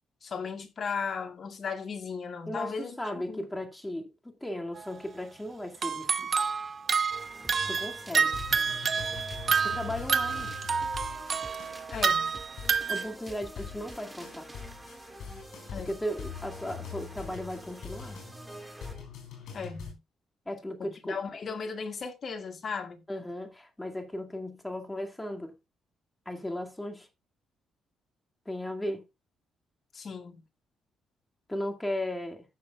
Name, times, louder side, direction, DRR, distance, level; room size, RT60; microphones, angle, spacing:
voice 1, 0.2-3.0 3.3-3.5 11.9-12.3 15.7-15.9 19.5-20.0 20.8-23.0 29.9-30.4, left 5 dB, 45° left, 1.9 m, -36 dB
voice 2, 2.5-6.3 7.7-8.3 9.6-10.5 12.9-14.5 15.8-18.2 20.5-21.2 23.1-25.5 26.3-27.1 28.5-29.0 31.5-32.4, left 1 dB, 10° left, 2.2 m, -36 dB
sound 1, 4.8-4.9 5.7-13.1, right 5 dB, 45° right, 0.8 m, -29 dB
sound 2, 7.1-19.1, right 1 dB, 10° right, 2.0 m, -47 dB
sound 3, 7.6-19.9, left 6 dB, 75° left, 5.7 m, -44 dB
15.0 x 6.7 x 2.4 m
cardioid pair, 90°, 0 cm